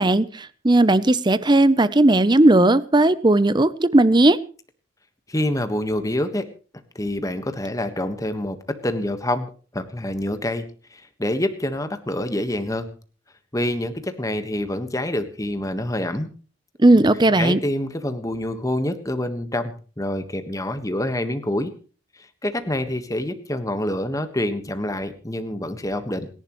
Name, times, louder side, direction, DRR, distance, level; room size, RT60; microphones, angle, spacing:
voice 1, 0.0-4.4 16.8-17.6, right 2 dB, 20° right, 15 dB, 0.7 m, -16 dB
voice 2, 5.3-6.5 6.9-8.6 8.8-10.6 10.9-12.9 13.5-16.3 17.4-21.7 22.2-26.3, left 1 dB, 15° left, 9 dB, 1.5 m, -26 dB
28.0 x 11.0 x 3.2 m, 0.39 s
head